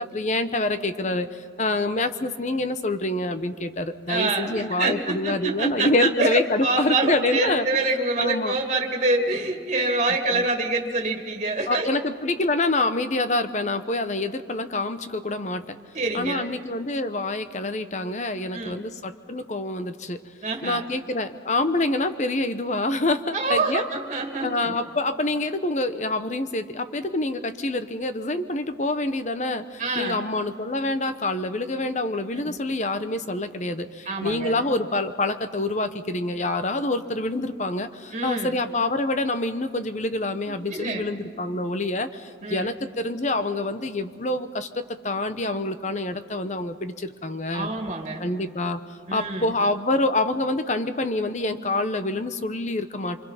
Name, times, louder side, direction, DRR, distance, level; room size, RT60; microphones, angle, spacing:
voice 1, 0.0-7.7 8.2-8.5 10.3-10.4 11.7-15.8 16.1-20.2 20.6-23.9 24.4-47.7 48.2-48.8 49.1-53.3, left 2 dB, 40° left, 10 dB, 0.9 m, -26 dB
voice 2, 4.1-11.9 15.9-16.5 18.5-18.9 20.4-20.9 23.3-24.8 29.8-30.2 32.4-32.6 34.1-34.5 38.1-38.6 40.4-41.0 42.4-42.7 47.5-48.2 49.1-49.5, right 3 dB, 40° right, 1 dB, 2.2 m, -26 dB
26.0 x 25.0 x 5.8 m, 2.1 s
head